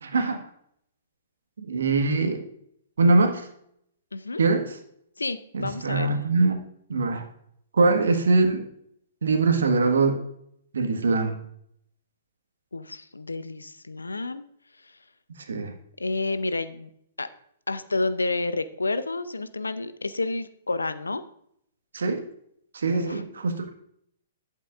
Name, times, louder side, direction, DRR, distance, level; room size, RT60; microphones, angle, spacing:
voice 1, 0.0-0.4 1.6-2.4 3.0-3.5 4.4-4.8 5.5-6.6 6.9-7.2 7.7-8.6 9.2-10.2 10.7-11.4 15.5-15.7 21.9-22.2 22.7-23.7, right 3 dB, 70° right, 6 dB, 1.5 m, -22 dB
voice 2, 4.1-4.4 5.2-6.1 12.7-14.4 16.0-16.9 17.2-17.3 17.7-21.2 22.9-23.2, left 3 dB, 85° left, 13 dB, 0.7 m, -30 dB
11.5 x 8.3 x 2.5 m, 0.70 s
figure-of-eight pair, 115°, 0 cm